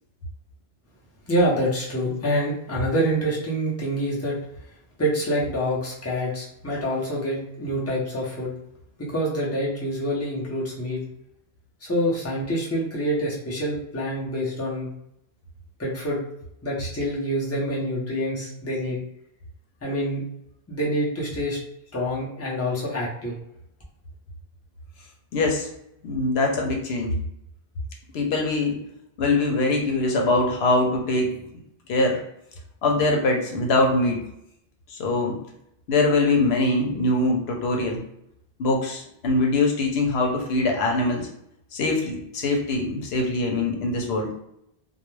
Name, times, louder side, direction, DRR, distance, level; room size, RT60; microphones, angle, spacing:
voice 1, 1.3-4.4 5.0-8.5 9.0-11.0 11.8-14.9 15.8-16.2 16.6-19.0 19.8-20.2 20.7-21.6 21.9-23.4, equal, 15° left, -5 dB, 0.7 m, -26 dB
voice 2, 25.3-25.7 26.0-27.1 28.1-28.8 29.2-31.4 31.9-32.2 32.8-34.2 34.9-35.4 35.9-38.0 38.6-41.3 41.7-44.3, left 2 dB, 90° left, 1 dB, 0.9 m, -23 dB
2.3 x 2.1 x 3.1 m, 0.79 s
omnidirectional pair, 1.0 m